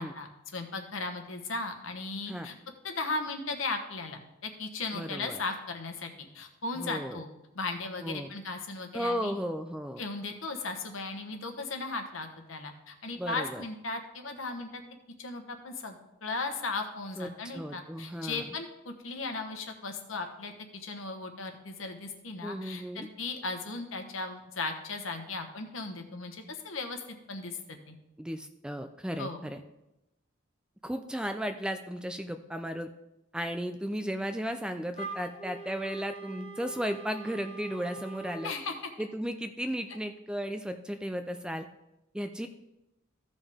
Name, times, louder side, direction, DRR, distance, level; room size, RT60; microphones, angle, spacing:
voice 1, 0.0-2.5 2.8-7.3 7.5-9.3 10.0-14.8 15.2-28.0 29.2-29.5 38.4-38.9, left 3 dB, 75° left, 5 dB, 1.2 m, -37 dB
voice 2, 4.9-5.4 6.7-7.2 8.0-8.3 8.9-10.0 13.2-13.6 17.2-18.4 22.4-23.1 28.2-29.6 30.8-32.9 33.3-38.5 39.0-41.7 42.1-42.5, equal, 5° right, 7 dB, 0.3 m, -35 dB
Wind instrument woodwind instrument, 34.9-38.6, right 3 dB, 35° left, 1.3 m, -43 dB
15.0 x 5.4 x 3.5 m, 0.92 s
head